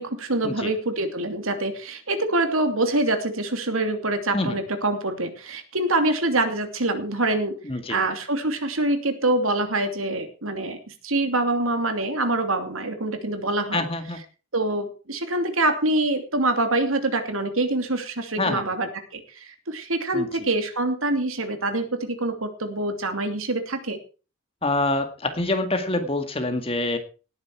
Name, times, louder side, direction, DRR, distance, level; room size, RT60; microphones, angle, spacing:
voice 1, 0.0-7.6 7.9-13.8 14.5-24.0, right 2 dB, 80° right, 7 dB, 2.8 m, -25 dB
voice 2, 7.7-8.0 13.7-14.2 18.4-18.6 20.1-20.3 24.6-27.0, left 2 dB, 25° left, 7 dB, 2.0 m, -26 dB
18.5 x 9.8 x 4.7 m, 0.36 s
head